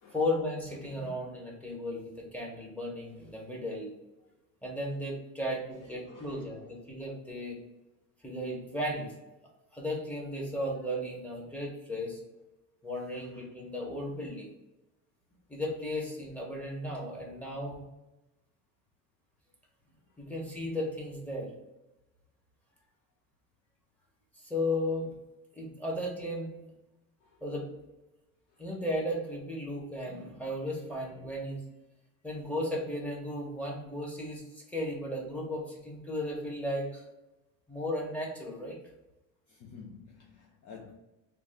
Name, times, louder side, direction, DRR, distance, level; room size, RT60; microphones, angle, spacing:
voice 1, 0.1-3.9 4.6-7.6 8.2-9.1 9.7-12.2 12.8-14.5 15.5-17.8 20.2-21.5 24.3-25.1 25.5-26.6 27.4-27.7 28.6-31.6 32.2-37.0 37.7-38.8, left 1 dB, 5° left, 1.0 m, -35 dB
voice 2, 6.0-6.7 27.2-27.4 28.5-28.6 39.5-40.9, left 5 dB, 50° left, 0.7 m, -51 dB
3.4 x 2.4 x 3.5 m
cardioid pair, 125°, 37 cm